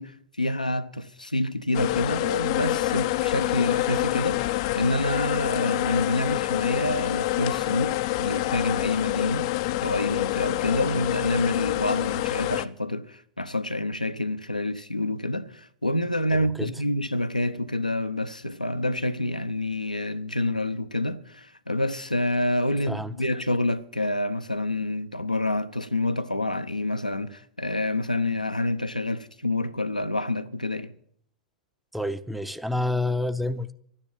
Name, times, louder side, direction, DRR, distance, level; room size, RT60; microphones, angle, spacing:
voice 1, 0.0-9.5 9.8-30.9, left 1 dB, 90° left, 0.8 m, -27 dB
sound 1, 1.7-12.7, left 16 dB, 45° left, 0.5 m, -27 dB
voice 2, 16.3-16.8 22.9-23.1 31.9-33.7, left 1 dB, ahead, 0.6 m, -29 dB
12.0 x 9.8 x 8.9 m
figure-of-eight pair, 95°, 4 cm